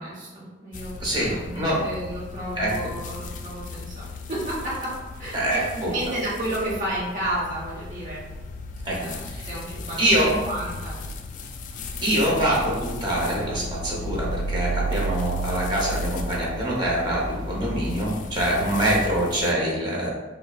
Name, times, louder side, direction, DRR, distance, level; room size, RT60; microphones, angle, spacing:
voice 1, 0.0-5.6 5.9-8.2 8.8-10.9, right 1 dB, 45° right, -7 dB, 1.1 m, -32 dB
sound 1, 0.7-19.5, equal, 45° left, 0.3 m, -34 dB
voice 2, 1.0-1.8 2.6-2.7 5.3-5.9 8.8-8.9 9.3-9.4 10.0-10.3 12.0-20.1, right 1 dB, 25° right, -5 dB, 1.0 m, -24 dB
5.4 x 2.2 x 2.4 m, 1.2 s
head